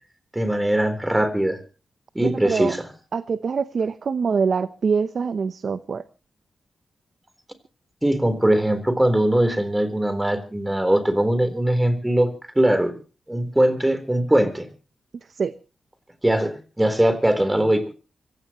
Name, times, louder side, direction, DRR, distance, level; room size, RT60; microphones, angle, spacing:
voice 1, 0.3-1.6 2.1-2.9 8.0-12.9 13.3-14.7 16.2-17.9, right 1 dB, 10° right, 10 dB, 3.9 m, -21 dB
voice 2, 2.2-2.7 3.1-6.0 15.3-15.5, right 5 dB, 65° right, 12 dB, 0.8 m, -24 dB
25.0 x 16.5 x 3.1 m, 0.35 s
cardioid pair, 85°, 0 cm